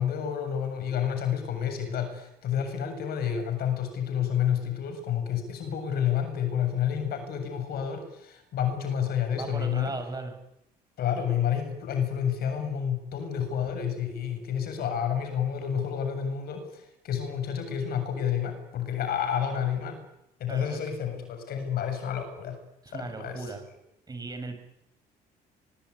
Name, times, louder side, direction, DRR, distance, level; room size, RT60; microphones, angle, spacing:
voice 1, 0.0-9.9 11.0-20.0 20.4-22.6 22.9-23.5, left 8 dB, 65° left, 7 dB, 7.6 m, -29 dB
voice 2, 9.4-10.3 20.5-20.8 22.8-23.6 24.1-24.6, right 3 dB, 25° right, 7 dB, 7.0 m, -37 dB
23.5 x 22.5 x 9.8 m, 0.81 s
cardioid pair, 110°, 17 cm